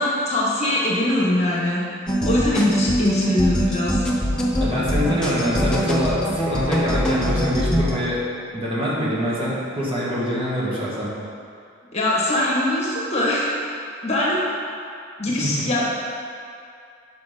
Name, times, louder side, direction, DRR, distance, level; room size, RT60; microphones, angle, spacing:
voice 1, 0.0-1.8 2.2-4.1 11.9-13.4 14.0-14.4 15.2-15.9, left 1 dB, 35° left, -5 dB, 1.3 m, -22 dB
sound 1, 2.1-8.0, equal, 5° left, 0.7 m, -22 dB
voice 2, 4.6-8.2 8.5-11.1 15.4-15.5, equal, 30° right, -7 dB, 1.5 m, -24 dB
6.1 x 5.6 x 5.0 m, 2.4 s
head